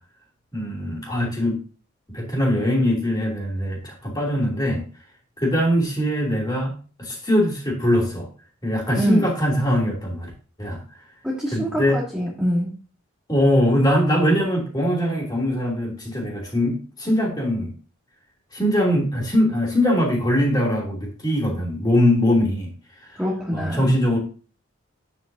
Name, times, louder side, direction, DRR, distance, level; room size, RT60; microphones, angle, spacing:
voice 1, 0.5-1.6 2.1-4.8 5.4-8.3 8.6-10.3 10.6-10.8 11.5-12.0 13.3-17.7 18.5-22.7 23.0-23.2 23.5-24.2, equal, 20° left, -2 dB, 2.9 m, -22 dB
voice 2, 9.0-9.3 11.2-12.8 23.2-23.9, equal, 5° right, -5 dB, 1.5 m, -24 dB
9.0 x 7.6 x 2.7 m, 0.37 s
head